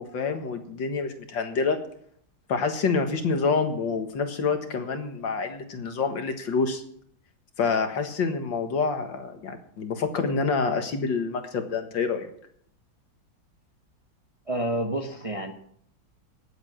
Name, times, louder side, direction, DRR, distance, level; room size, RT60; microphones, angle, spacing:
voice 1, 0.0-1.8 2.5-6.8 7.6-12.3, left 4 dB, 70° left, 6 dB, 2.2 m, -27 dB
voice 2, 14.5-15.5, right 1 dB, 20° right, 4 dB, 1.0 m, -29 dB
19.0 x 8.0 x 6.2 m, 0.65 s
omnidirectional pair, 2.1 m